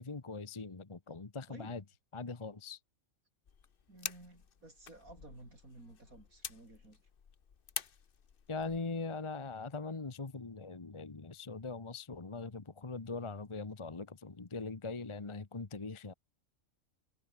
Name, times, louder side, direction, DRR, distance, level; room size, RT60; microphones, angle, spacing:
voice 1, 0.0-1.8 2.1-2.8 8.5-16.1, left 4 dB, 25° left, 1.1 m, -41 dB
voice 2, 1.5-1.8 3.9-7.0, right 2 dB, 90° right, 6.9 m, -54 dB
sound 1, 3.4-8.8, left 7 dB, 45° left, 1.1 m, -47 dB
omnidirectional pair, 1.4 m